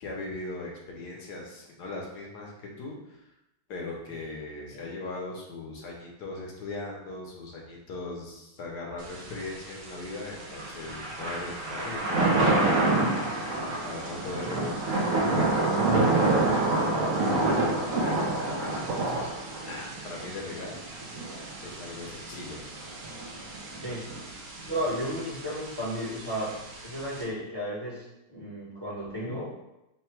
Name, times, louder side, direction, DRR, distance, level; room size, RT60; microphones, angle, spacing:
voice 1, 0.0-3.2 3.7-12.7 13.8-15.6 16.2-19.3 19.6-20.7 21.6-22.6, left 2 dB, 65° left, -1 dB, 1.1 m, -39 dB
Thunder / Rain, 9.0-27.2, right 2 dB, 75° right, 0.7 m, -28 dB
voice 2, 14.4-14.8 23.8-24.0 24.7-26.5 26.8-29.5, equal, 25° left, -9 dB, 0.5 m, -34 dB
3.8 x 2.2 x 4.4 m, 0.90 s
omnidirectional pair, 2.3 m